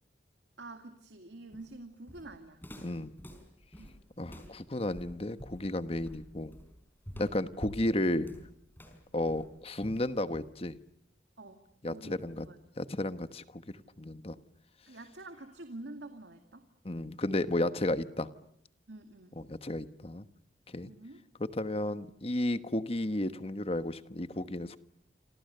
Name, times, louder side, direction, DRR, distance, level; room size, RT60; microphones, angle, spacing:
voice 1, 0.6-2.6 3.8-4.0 11.4-11.6 11.9-12.2 12.5-12.6 14.9-16.7 18.9-19.4 20.9-21.2, right 2 dB, 75° right, 7 dB, 2.3 m, -47 dB
Walk footsteps, 1.5-10.8, equal, 10° left, 4.7 m, -48 dB
voice 2, 2.8-3.1 4.2-6.5 7.2-8.3 9.1-10.8 11.8-12.5 12.8-13.6 14.0-14.4 16.8-18.3 19.4-20.2 20.7-20.9 21.4-24.8, left 1 dB, 35° left, 12 dB, 1.2 m, -33 dB
28.0 x 26.5 x 6.8 m, 0.72 s
head